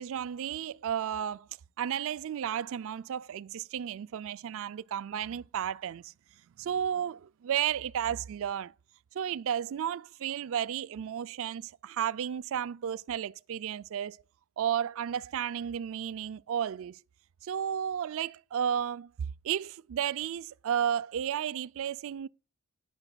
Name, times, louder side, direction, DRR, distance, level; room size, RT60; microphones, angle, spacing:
voice 1, 0.0-1.5 1.8-6.1 6.6-8.7 9.2-14.2 14.6-17.0 17.4-19.1 19.4-22.3, right 9 dB, 60° right, 0.3 m, -33 dB
10.5 x 10.5 x 2.3 m
head